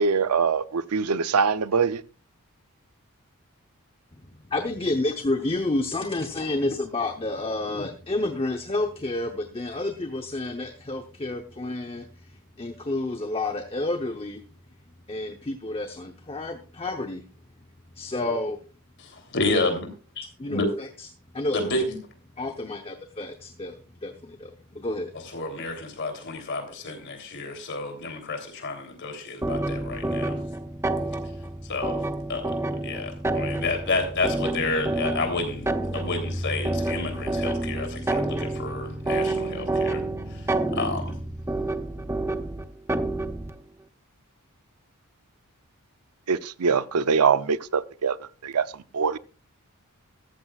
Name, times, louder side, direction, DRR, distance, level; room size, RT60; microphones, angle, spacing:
voice 1, 0.0-2.0 46.3-48.2 48.4-48.7 48.9-49.2, right 5 dB, 85° right, 0.6 m, -23 dB
voice 2, 4.2-14.4 15.1-17.2 17.9-18.6 20.4-21.1 21.3-21.6 22.4-25.1, left 2 dB, 25° left, 0.9 m, -30 dB
voice 3, 19.0-19.9 20.1-20.7 21.5-21.9 25.3-30.4 31.6-40.0 40.3-41.2, left 2 dB, 55° left, 3.3 m, -30 dB
sound 1, 29.4-43.5, right 2 dB, 10° right, 0.6 m, -29 dB
14.0 x 14.0 x 2.4 m
head